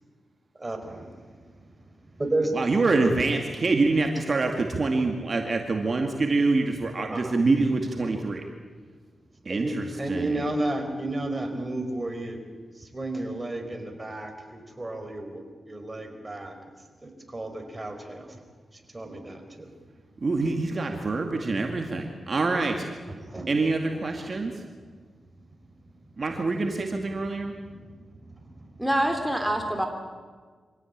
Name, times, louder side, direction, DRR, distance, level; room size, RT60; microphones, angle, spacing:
voice 1, 0.6-1.1 2.3-2.5 7.1-7.3 9.5-12.4 12.8-15.4 15.7-16.5 17.0-18.4 18.9-19.7 23.3-23.5, right 1 dB, 25° right, 4 dB, 4.5 m, -32 dB
voice 2, 2.5-8.4 9.5-10.4 20.2-22.9 23.5-24.5 26.2-27.5, right 3 dB, 45° right, 3 dB, 2.2 m, -25 dB
voice 3, 28.8-29.8, right 1 dB, 5° right, 3 dB, 3.0 m, -25 dB
25.5 x 17.0 x 8.8 m, 1.5 s
cardioid pair, 75°, 0 cm